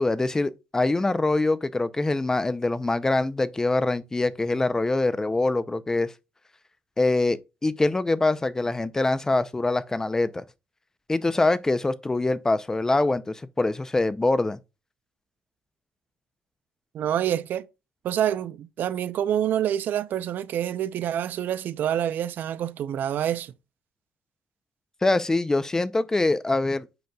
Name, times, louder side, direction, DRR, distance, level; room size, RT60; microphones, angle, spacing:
voice 1, 0.0-6.1 7.0-10.4 11.1-14.6 25.0-26.9, left 2 dB, 15° left, 0.5 m, -24 dB
voice 2, 16.9-17.7 18.0-23.5, right 10 dB, 65° right, 0.5 m, -27 dB
7.9 x 5.3 x 2.3 m
cardioid pair, 100°, 4 cm